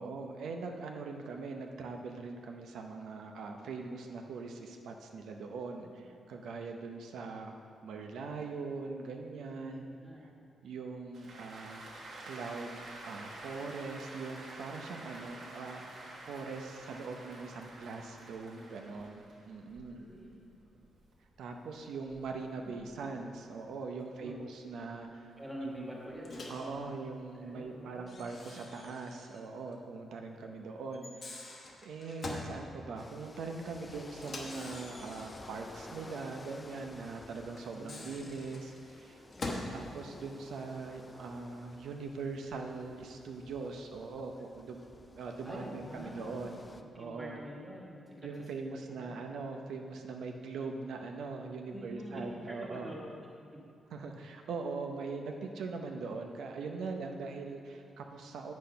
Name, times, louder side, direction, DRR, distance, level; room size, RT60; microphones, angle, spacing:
voice 1, 0.0-9.9 10.6-11.8 12.3-15.8 16.2-20.0 21.4-26.0 26.5-31.5 31.8-39.2 39.7-44.8 45.1-46.6 46.9-47.4 48.2-52.9 53.9-58.5, right 4 dB, 80° right, 3 dB, 0.7 m, -41 dB
voice 2, 9.7-10.3 19.7-20.4 22.6-22.9 24.1-24.3 25.4-26.9 27.4-28.3 37.7-38.5 39.3-39.8 45.4-46.5 47.0-49.2 51.7-53.1, equal, 5° right, -4 dB, 1.4 m, -46 dB
sound 1, 11.1-23.6 24.0-26.1 26.6-28.3, right 2 dB, 55° right, 1.4 m, -50 dB
Microwave oven, 26.2-26.7 28.1-29.4 29.7-29.8 30.9-32.5 34.2-35.6 37.6-39.8, left 2 dB, 35° left, 1.0 m, -44 dB
sound 2, 33.0-46.8, left 2 dB, 15° left, 0.3 m, -53 dB
8.5 x 6.2 x 5.6 m, 2.4 s
wide cardioid pair, 170°, 0 cm